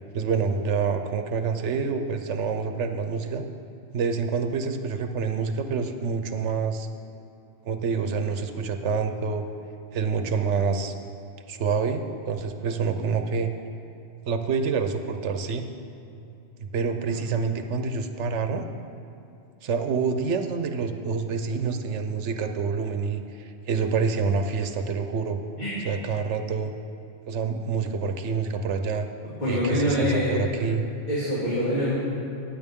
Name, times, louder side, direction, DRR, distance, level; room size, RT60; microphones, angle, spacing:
voice 1, 0.1-3.4 3.9-6.9 7.6-9.4 9.9-10.9 11.5-13.5 14.3-15.6 16.2-16.3 16.6-18.7 19.6-25.4 25.8-26.7 27.3-29.1 29.5-30.9, right 5 dB, 85° right, 7 dB, 1.1 m, -27 dB
voice 2, 29.4-30.7 31.1-32.0, equal, 40° left, -10 dB, 2.7 m, -25 dB
15.5 x 9.4 x 3.6 m, 2.7 s
omnidirectional pair, 1.2 m